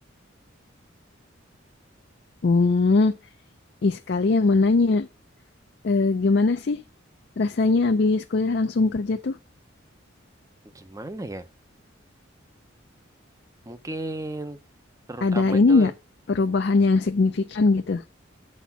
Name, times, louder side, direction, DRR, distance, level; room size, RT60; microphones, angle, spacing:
voice 1, 2.4-3.1 3.8-5.1 5.8-6.8 7.4-9.4 15.2-15.9 16.3-18.0, left 3 dB, 55° left, 0.4 m, -20 dB
voice 2, 10.7-11.5 13.7-14.6 15.1-15.9, right 2 dB, 15° right, 0.6 m, -34 dB
8.2 x 4.3 x 5.6 m
head